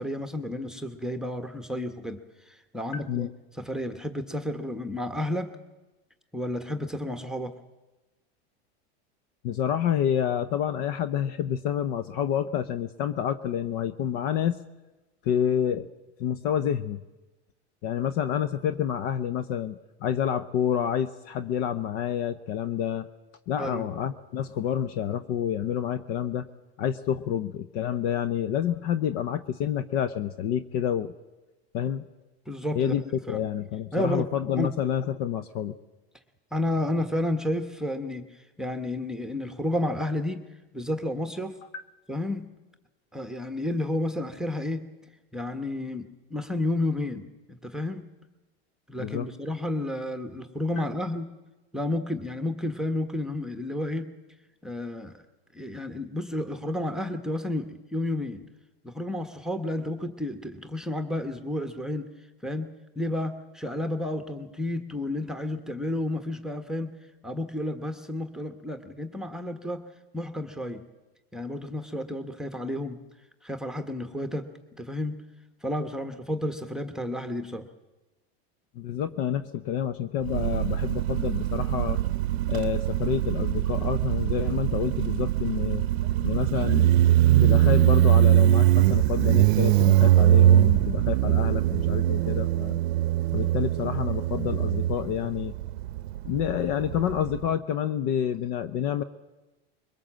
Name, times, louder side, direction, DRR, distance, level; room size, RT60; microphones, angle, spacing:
voice 1, 0.0-2.2 2.5-3.3 3.6-5.6 6.3-7.6 23.6-23.9 32.5-32.9 33.3-33.4 33.9-34.3 34.6-34.7 36.5-40.4 40.7-41.6 42.1-42.5 43.1-44.8 45.3-48.1 48.9-51.3 51.7-54.1 54.6-55.2 55.5-58.4 58.8-62.1 62.4-62.7 63.0-66.9 67.2-69.8 70.1-70.8 71.3-73.0 73.4-74.5 74.8-75.2 75.6-77.7, left 1 dB, ahead, 6 dB, 1.2 m, -31 dB
voice 2, 2.8-3.3 9.4-14.6 15.2-15.9 16.2-17.0 17.8-23.1 23.5-26.5 26.8-31.1 31.7-32.0 32.7-33.0 33.3-35.8 41.7-41.8 49.0-49.3 78.8-82.0 82.5-85.9 86.2-87.0 87.4-92.8 93.3-95.5 96.2-99.0, left 9 dB, 55° left, 13 dB, 0.9 m, -28 dB
Motorcycle, 80.2-97.5, right 13 dB, 75° right, 0.7 m, -22 dB
22.5 x 19.5 x 7.6 m, 1.1 s
supercardioid pair, 115°, 32 cm